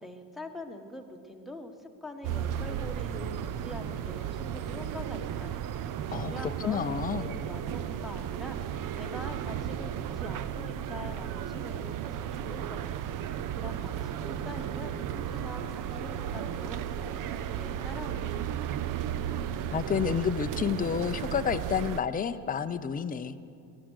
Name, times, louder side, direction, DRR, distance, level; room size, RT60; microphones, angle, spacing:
voice 1, 0.0-18.5, left 1 dB, ahead, 5 dB, 1.5 m, -44 dB
sound 1, 2.2-22.0, right 9 dB, 45° right, 0.7 m, -34 dB
voice 2, 6.1-7.3 19.7-23.3, left 7 dB, 20° left, 10 dB, 0.6 m, -30 dB
18.0 x 12.5 x 6.5 m, 2.5 s
supercardioid pair, 95°, 47 cm